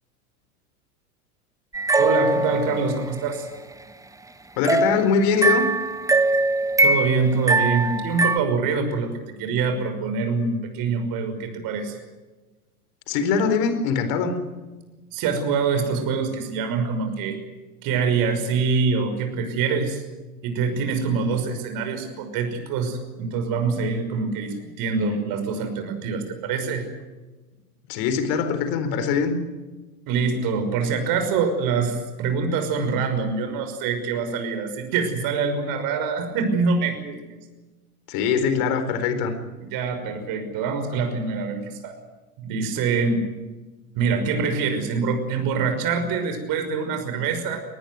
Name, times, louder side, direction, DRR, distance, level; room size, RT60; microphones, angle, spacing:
sound 1, 1.7-3.2 4.6-8.4, right 2 dB, 5° right, 1.2 m, -22 dB
voice 1, 2.0-3.5 6.8-9.1 9.4-12.0 15.1-17.4 17.8-20.0 20.4-26.9 30.1-37.2 39.6-41.9 42.4-43.3 43.9-47.6, right 5 dB, 50° right, 7 dB, 5.9 m, -25 dB
voice 2, 4.6-5.7 13.1-14.4 27.9-29.4 38.1-39.3, left 6 dB, 55° left, 9 dB, 4.3 m, -22 dB
21.0 x 20.0 x 9.5 m, 1.2 s
hypercardioid pair, 90°, 45 cm